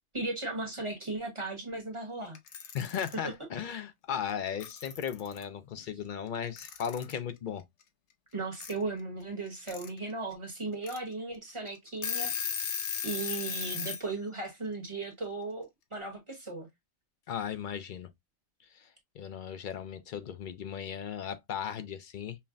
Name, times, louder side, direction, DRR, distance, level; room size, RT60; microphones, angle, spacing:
voice 1, 0.1-2.4 3.2-3.3 8.3-12.3 12.6-12.7 13.0-16.7, right 3 dB, 25° right, 1.2 m, -36 dB
Alarm / Clock, 2.4-3.2 4.3-4.4 4.6-5.4 6.6-7.2 8.6-8.7 9.5-9.9 10.3-10.4 10.8-11.0 11.5-11.6 11.9-14.0, left 7 dB, 75° left, 1.0 m, -35 dB
voice 2, 2.7-7.6 17.3-18.1 19.2-22.4, left 8 dB, 55° left, 0.6 m, -36 dB
5.5 x 2.1 x 2.5 m
omnidirectional pair, 1.2 m